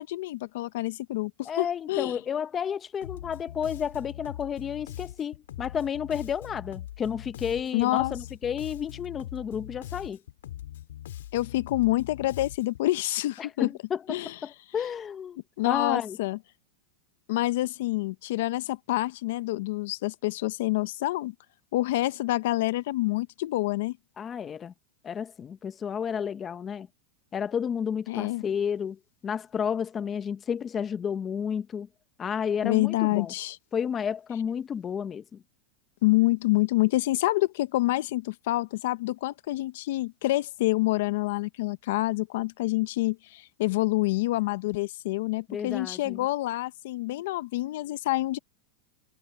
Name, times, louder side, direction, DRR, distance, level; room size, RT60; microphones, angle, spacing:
voice 1, 0.0-2.1 7.7-8.1 11.3-13.7 14.1-14.3 15.6-16.4 17.3-21.3 21.7-24.0 28.1-28.4 32.6-33.6 36.0-48.4, left 18 dB, 65° left, 0.8 m, -27 dB
voice 2, 1.4-10.2 13.4-15.4 15.7-16.2 24.2-24.7 25.0-26.9 27.3-31.9 32.2-33.3 33.7-35.4 45.5-46.2, left 7 dB, 20° left, 0.7 m, -31 dB
Bass guitar, 3.0-12.9, left 12 dB, 85° left, 5.1 m, -41 dB
supercardioid pair, 150°, 0 cm